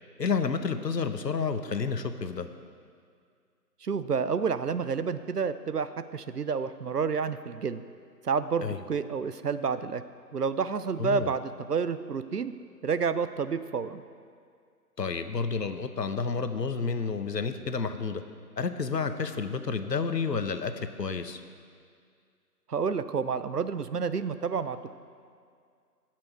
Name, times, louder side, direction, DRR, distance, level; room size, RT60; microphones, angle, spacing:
voice 1, 0.2-2.5 8.6-8.8 11.0-11.3 15.0-18.2 18.6-21.4, left 5 dB, 75° left, 9 dB, 0.9 m, -30 dB
voice 2, 3.8-7.8 8.2-10.0 10.3-11.4 11.7-12.5 12.8-14.0 22.7-24.9, right 5 dB, 70° right, 12 dB, 0.6 m, -29 dB
16.0 x 6.1 x 4.6 m, 2.2 s
figure-of-eight pair, 175°, 50 cm